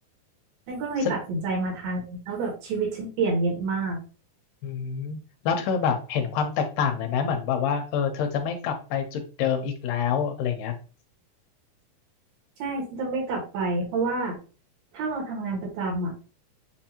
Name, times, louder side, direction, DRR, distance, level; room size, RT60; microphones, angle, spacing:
voice 1, 0.7-4.0 12.6-14.4 14.9-16.1, right 3 dB, 80° right, -1 dB, 3.4 m, -28 dB
voice 2, 4.6-5.2 5.4-10.8, left 7 dB, 80° left, 6 dB, 2.1 m, -27 dB
7.3 x 2.6 x 2.8 m, 0.35 s
omnidirectional pair, 4.1 m